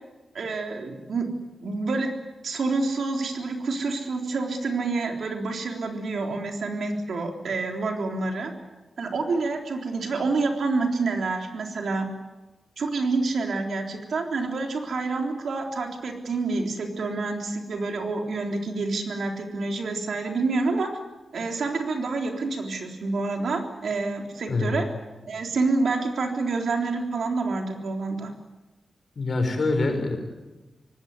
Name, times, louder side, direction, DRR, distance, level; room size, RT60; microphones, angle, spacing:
voice 1, 0.3-1.3 1.6-2.1 2.4-8.5 9.0-12.1 12.8-20.9 21.3-24.9 25.3-28.3, right 3 dB, 75° right, 3 dB, 3.7 m, -28 dB
voice 2, 29.2-30.2, left 3 dB, 45° left, 5 dB, 5.7 m, -24 dB
25.5 x 19.0 x 9.6 m, 1.1 s
wide cardioid pair, 165°, 0 cm